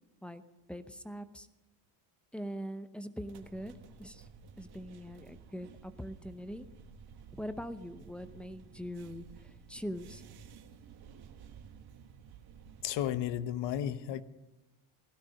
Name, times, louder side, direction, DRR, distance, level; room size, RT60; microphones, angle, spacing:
voice 1, 0.7-1.5 2.3-3.7 4.0-4.3 4.6-6.7 7.3-10.2, equal, ahead, 11 dB, 0.7 m, -42 dB
sound 1, 3.2-13.2, right 6 dB, 50° right, 1.3 m, -54 dB
voice 2, 12.8-14.2, left 11 dB, 60° left, 13 dB, 1.0 m, -33 dB
16.5 x 12.5 x 6.4 m, 1.0 s
cardioid pair, 135°, 47 cm